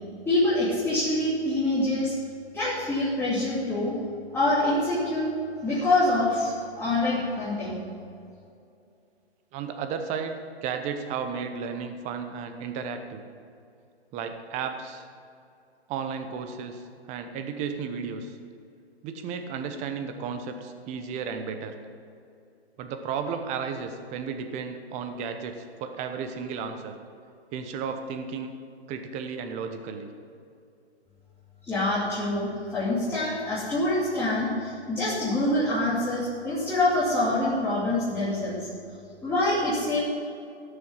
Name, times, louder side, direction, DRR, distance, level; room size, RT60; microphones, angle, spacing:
voice 1, 0.2-2.1 2.5-3.9 4.3-5.3 5.6-7.8 31.6-38.7 39.2-40.0, left 1 dB, 5° left, -11 dB, 2.8 m, -25 dB
voice 2, 9.5-13.2 14.1-15.1 15.9-18.4 19.0-21.8 22.8-26.9 27.5-28.5 28.9-30.1, right 6 dB, 20° right, 7 dB, 0.9 m, -33 dB
17.0 x 6.8 x 5.7 m, 2.5 s
hypercardioid pair, 135°, 33 cm